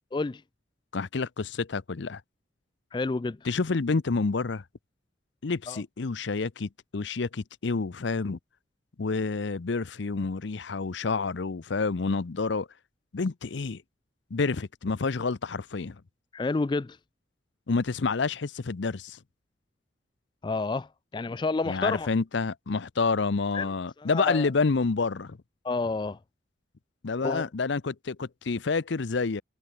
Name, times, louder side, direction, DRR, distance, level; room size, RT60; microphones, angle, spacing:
voice 1, 0.9-2.2 3.4-4.6 5.4-8.4 9.0-12.7 13.1-13.8 14.3-16.0 17.7-19.2 21.7-25.4 27.0-29.4, left 4 dB, 65° left, 0.6 m, -28 dB
voice 2, 2.9-3.4 5.7-5.8 16.3-17.0 20.4-20.9 21.1-22.1 23.5-23.7 24.0-24.5 25.6-26.2 27.2-27.4, left 3 dB, 25° left, 0.3 m, -29 dB
head